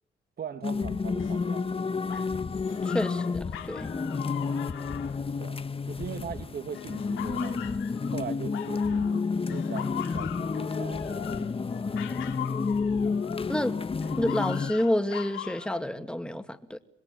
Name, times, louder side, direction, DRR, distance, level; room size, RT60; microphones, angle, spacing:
voice 1, 0.4-1.7 5.4-7.7 8.1-11.5, right 7 dB, 50° right, 2.2 m, -40 dB
sound 1, 0.6-14.7, left 4 dB, 30° left, 1.2 m, -30 dB
sound 2, 1.2-6.2 6.7-9.2 9.5-13.6 14.0-15.8, left 11 dB, 90° left, 2.7 m, -41 dB
voice 2, 2.8-3.9 13.5-13.8 14.2-16.8, left 1 dB, 5° left, 2.3 m, -29 dB
26.0 x 21.0 x 9.3 m
cardioid pair, 90°, 20 cm